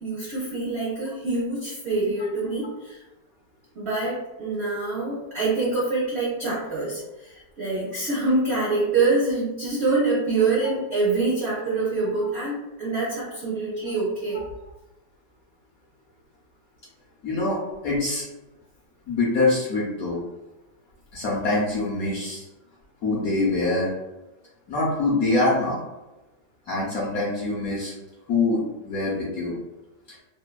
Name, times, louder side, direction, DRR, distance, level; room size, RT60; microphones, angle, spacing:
voice 1, 0.0-3.0 3.7-14.4, right 3 dB, 90° right, -7 dB, 0.5 m, -25 dB
voice 2, 17.2-18.3 19.1-20.2 21.1-22.5 23.0-23.9 24.7-25.8 26.7-27.9 28.3-29.6, left 2 dB, 70° left, -5 dB, 0.8 m, -24 dB
3.2 x 2.1 x 2.2 m, 1.0 s
omnidirectional pair, 2.1 m